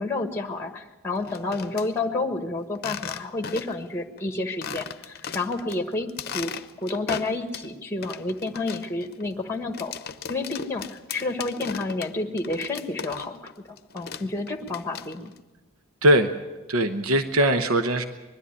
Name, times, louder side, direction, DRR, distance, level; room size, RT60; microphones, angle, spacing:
voice 1, 0.0-6.1 6.3-6.5 6.8-9.9 10.3-13.5 13.9-15.3, left 2 dB, 10° left, 6 dB, 1.4 m, -30 dB
sound 1, 1.2-1.9 2.7-3.9 4.2-4.3 4.6-5.8 6.1-7.7 8.0-13.5 13.8-15.4, left 6 dB, 45° left, 0.8 m, -37 dB
voice 2, 16.7-18.0, right 1 dB, 75° right, 8 dB, 1.0 m, -20 dB
21.0 x 13.0 x 9.7 m, 1.1 s
head